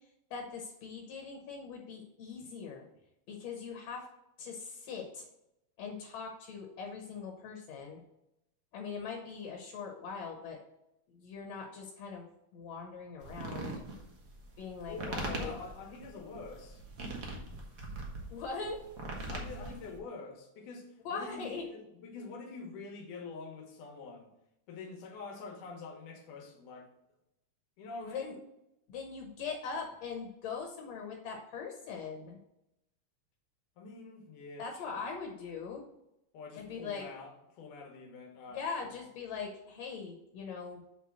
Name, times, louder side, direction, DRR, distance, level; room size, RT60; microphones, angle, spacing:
voice 1, 0.3-2.9 3.3-4.1 4.4-5.3 5.8-8.0 8.7-10.6 11.1-13.7 14.6-15.6 18.3-18.8 19.7-19.8 21.1-21.7 28.0-28.3 28.9-32.4 34.6-35.8 36.6-37.0 38.5-40.8, left 5 dB, 65° left, 1 dB, 2.0 m, -41 dB
sound 1, 13.2-20.0, right 2 dB, 80° right, 0.7 m, -41 dB
voice 2, 14.9-16.8 19.3-24.3 24.7-26.9 27.8-28.4 33.8-35.2 36.3-38.9, left 4 dB, 85° left, 2 dB, 2.8 m, -46 dB
7.3 x 3.4 x 6.1 m, 0.85 s
omnidirectional pair, 3.5 m